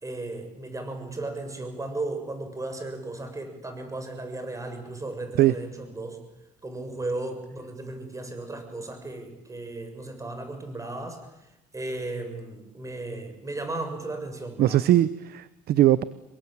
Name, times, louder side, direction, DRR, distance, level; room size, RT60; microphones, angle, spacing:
voice 1, 0.0-6.2 6.6-11.3 11.7-14.8, right 2 dB, 20° right, 7 dB, 6.7 m, -35 dB
voice 2, 14.6-16.0, right 13 dB, 70° right, 16 dB, 0.9 m, -20 dB
27.5 x 22.5 x 9.0 m, 0.90 s
cardioid pair, 110°, 17 cm